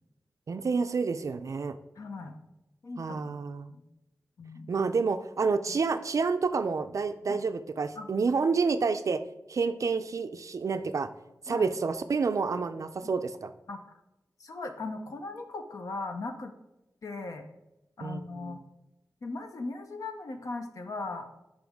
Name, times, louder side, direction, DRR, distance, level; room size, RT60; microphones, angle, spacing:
voice 1, 0.5-1.8 3.0-3.7 4.7-9.2 9.5-11.1 11.5-13.5 18.0-18.6, right 4 dB, 55° right, 8 dB, 0.4 m, -29 dB
voice 2, 2.0-2.4 2.8-3.4 3.7-3.8 4.4-4.7 7.3-7.4 8.0-8.1 11.5-11.7 13.0-13.1 13.7-14.0 14.4-16.5 17.0-17.5 18.0-18.6 19.2-21.3, left 3 dB, 65° left, 5 dB, 0.7 m, -38 dB
9.1 x 5.1 x 3.5 m, 0.94 s
wide cardioid pair, 115°, 6 cm